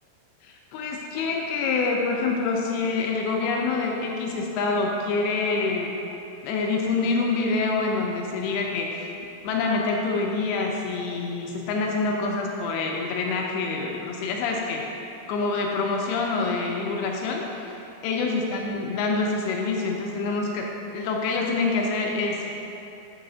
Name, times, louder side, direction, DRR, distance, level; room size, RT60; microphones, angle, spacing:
voice 1, 0.4-5.9 6.4-9.1 9.4-14.8 15.3-20.7 20.9-22.5, left 3 dB, 85° left, 0 dB, 2.3 m, -26 dB
9.1 x 3.9 x 3.8 m, 2.9 s
omnidirectional pair, 4.9 m